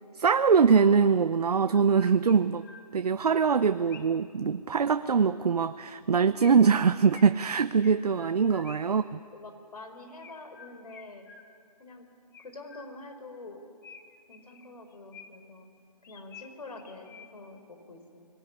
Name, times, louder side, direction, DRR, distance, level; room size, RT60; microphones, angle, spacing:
voice 1, 0.2-2.6 2.9-9.2, right 6 dB, 70° right, 12 dB, 0.7 m, -23 dB
Chirp tweet, 1.7-4.3 6.4-9.1 10.2-11.8 12.3-13.2 13.8-15.6 16.0-17.6, left 6 dB, 30° left, 1.3 m, -51 dB
voice 2, 9.3-11.2 11.8-12.1 12.4-13.6 14.3-15.7 16.1-18.3, left 2 dB, 70° left, 6 dB, 4.4 m, -46 dB
21.5 x 18.0 x 9.7 m, 2.4 s
hypercardioid pair, 160°, 21 cm